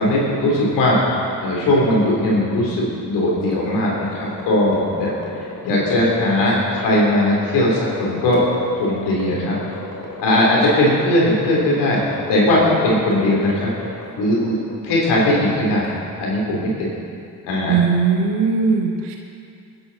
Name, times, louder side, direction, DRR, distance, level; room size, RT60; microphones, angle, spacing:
voice 1, 0.0-5.1 5.6-8.4 8.7-9.6 10.2-13.7 14.1-14.5 14.8-16.9 17.4-17.9, left 1 dB, 90° left, -4 dB, 3.6 m, -19 dB
sound 1, 3.4-16.0, left 2 dB, 55° left, 3.8 m, -35 dB
voice 2, 17.7-19.2, right 5 dB, 85° right, 1 dB, 1.8 m, -19 dB
21.0 x 10.5 x 4.2 m, 2.4 s
supercardioid pair, 40°, 40 cm